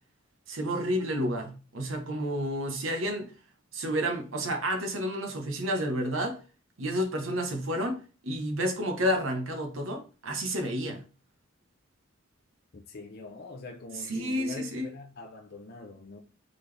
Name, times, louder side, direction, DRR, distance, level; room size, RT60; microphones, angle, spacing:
voice 1, 0.5-3.3 3.7-6.4 6.8-8.0 8.2-11.0 14.1-14.9, equal, 80° right, 1.1 m, -30 dB
voice 2, 12.7-16.2, left 3 dB, 50° left, 0.6 m, -43 dB
4.0 x 3.6 x 3.3 m
head